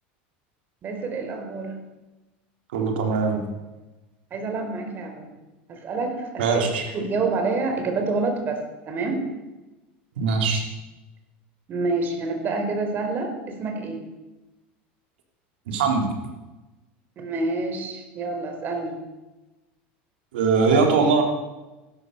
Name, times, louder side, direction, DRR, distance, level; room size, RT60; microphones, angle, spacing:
voice 1, 0.8-1.7 4.3-5.3 5.7-6.6 6.9-8.6 8.9-9.2 11.7-14.0 17.2-19.0, right 3 dB, 40° right, 4 dB, 4.4 m, -27 dB
voice 2, 2.7-3.4 6.4-6.8 10.2-10.6 15.7-16.1 20.3-21.2, right 4 dB, 85° right, 2 dB, 3.9 m, -21 dB
15.5 x 13.0 x 6.9 m, 1.1 s
supercardioid pair, 115°, 5 cm